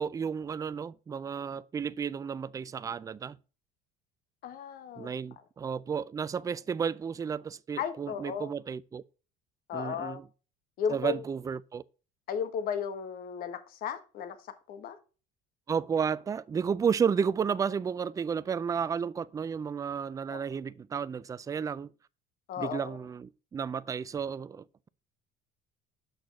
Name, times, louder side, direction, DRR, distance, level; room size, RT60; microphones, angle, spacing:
voice 1, 0.0-3.4 5.0-9.0 9.7-10.2 10.9-11.8 15.7-21.9 22.6-24.9, right 6 dB, 20° right, 0.4 m, -32 dB
voice 2, 4.4-5.1 7.8-8.5 9.7-10.2 10.8-11.2 12.3-15.0 20.3-20.4 22.5-23.0, left 7 dB, 55° left, 1.4 m, -35 dB
6.5 x 6.3 x 4.0 m
cardioid pair, 125°, 18 cm